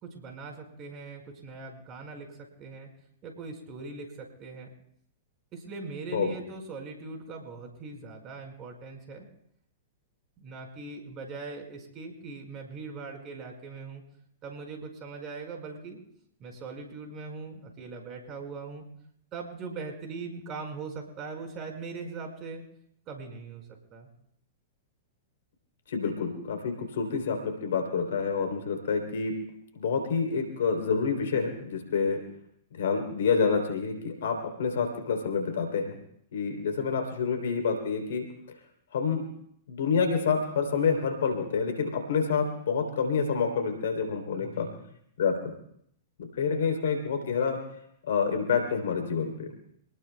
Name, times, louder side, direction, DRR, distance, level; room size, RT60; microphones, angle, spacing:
voice 1, 0.0-2.9 3.2-4.1 4.4-4.7 5.5-9.3 10.4-14.0 14.4-16.0 16.4-18.9 19.3-22.6 23.1-23.6 23.9-24.1 44.4-44.8, right 4 dB, 35° right, 3 dB, 5.0 m, -40 dB
voice 2, 25.9-29.3 29.7-32.2 32.7-36.0 36.3-38.2 38.9-39.2 39.7-44.7 45.2-45.5 46.2-47.6 48.1-49.5, left 5 dB, 70° left, 4 dB, 3.4 m, -28 dB
27.5 x 19.5 x 2.3 m, 0.70 s
hypercardioid pair, 110°, 0 cm